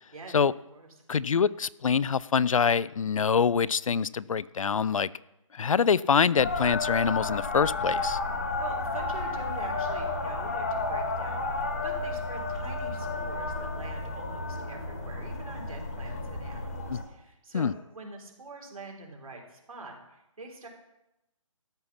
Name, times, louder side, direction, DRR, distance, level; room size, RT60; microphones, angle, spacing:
voice 1, 1.1-5.1 5.5-8.2 16.9-17.0 17.5-17.7, left 6 dB, 70° left, 20 dB, 0.4 m, -25 dB
sound 1, 6.4-17.0, left 3 dB, 25° left, 1.3 m, -32 dB
voice 2, 8.3-20.7, right 3 dB, 85° right, 1 dB, 3.5 m, -45 dB
13.0 x 5.7 x 7.1 m, 0.90 s
hypercardioid pair, 180°, 17 cm